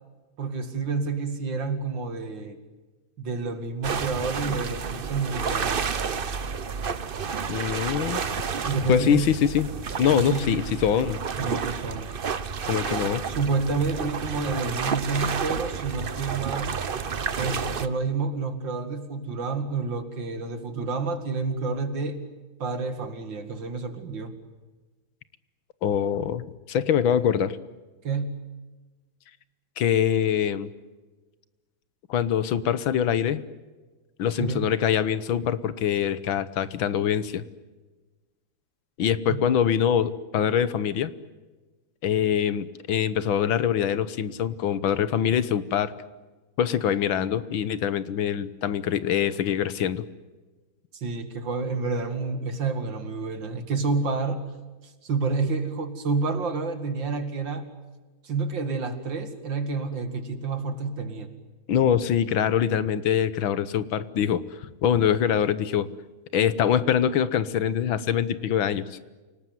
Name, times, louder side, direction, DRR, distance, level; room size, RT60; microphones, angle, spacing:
voice 1, 0.4-2.6 3.2-5.9 8.6-9.3 10.1-10.5 11.4-12.1 13.3-16.8 17.4-22.2 22.6-24.3 28.0-28.4 34.4-34.7 39.3-39.4 50.9-54.4 55.0-57.6 58.2-61.3, right 4 dB, 70° right, 8 dB, 2.9 m, -29 dB
sound 1, 3.8-17.9, right 6 dB, 45° right, 0.7 m, -30 dB
voice 2, 7.5-8.2 8.9-9.7 10.0-11.2 12.7-13.2 25.8-27.6 29.8-30.7 32.1-33.4 34.2-37.4 39.0-41.1 42.0-45.9 46.6-50.1 61.7-65.9 66.3-69.0, left 9 dB, 80° left, 15 dB, 1.9 m, -24 dB
29.0 x 18.5 x 9.4 m, 1.3 s
omnidirectional pair, 2.2 m